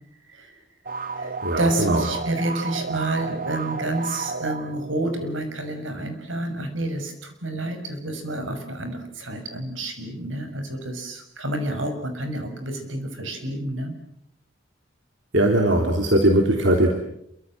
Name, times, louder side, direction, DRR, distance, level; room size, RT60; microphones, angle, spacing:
voice 1, 0.3-0.6 1.2-14.0, right 1 dB, 85° right, 7 dB, 6.0 m, -29 dB
sound 1, 0.9-5.5, right 4 dB, 45° right, 1.3 m, -32 dB
voice 2, 1.4-2.1 15.3-16.9, right 1 dB, 70° right, 3 dB, 3.3 m, -19 dB
27.5 x 24.0 x 7.6 m, 0.75 s
head